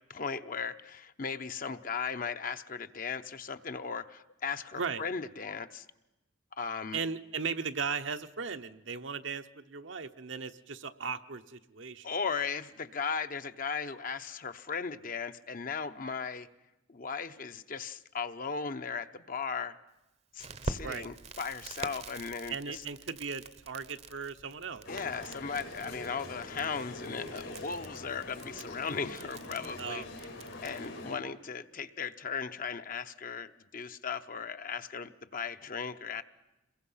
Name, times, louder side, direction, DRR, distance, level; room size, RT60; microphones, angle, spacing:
voice 1, 0.1-5.9 6.6-7.0 12.0-16.5 16.9-19.8 20.3-22.8 24.9-30.3 30.6-36.2, left 5 dB, 45° left, 9 dB, 0.9 m, -37 dB
voice 2, 6.9-12.1 20.8-21.0 22.5-24.9 29.8-30.4, right 5 dB, 70° right, 8 dB, 0.9 m, -37 dB
Crackle, 20.4-30.9, right 3 dB, 35° right, 0.8 m, -46 dB
sound 1, 24.8-31.2, left 2 dB, 85° left, 5.1 m, -44 dB
28.0 x 22.0 x 5.7 m, 0.97 s
head